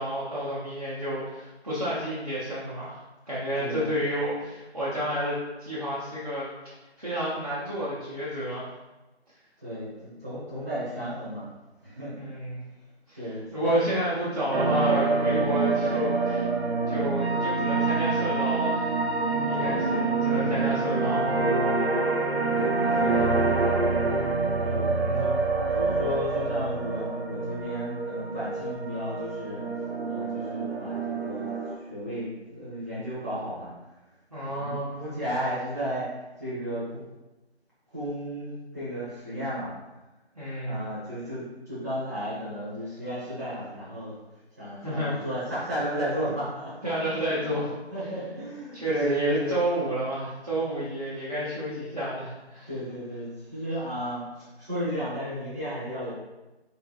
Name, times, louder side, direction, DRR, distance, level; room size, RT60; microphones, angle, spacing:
voice 1, 0.0-3.0 3.3-6.5 7.0-8.7 12.1-12.6 13.1-13.2 13.5-16.5 16.9-18.9 19.5-21.2 24.9-25.4 34.3-35.0 40.4-40.8 44.8-45.1 46.8-47.7 48.7-52.7, right 1 dB, 35° right, -10 dB, 0.7 m, -30 dB
voice 2, 3.6-4.0 9.6-11.4 11.8-12.3 13.1-13.8 19.5-20.0 22.0-22.2 22.5-23.9 24.5-25.3 25.7-29.6 30.1-33.7 34.4-37.0 37.9-39.7 40.6-44.1 44.6-46.7 47.3-47.6 47.9-49.5 52.7-56.1, equal, 15° right, -12 dB, 1.1 m, -34 dB
sound 1, 14.5-31.7, right 3 dB, 75° right, 0.9 m, -26 dB
4.0 x 3.7 x 2.4 m, 1.1 s
figure-of-eight pair, 165°, 33 cm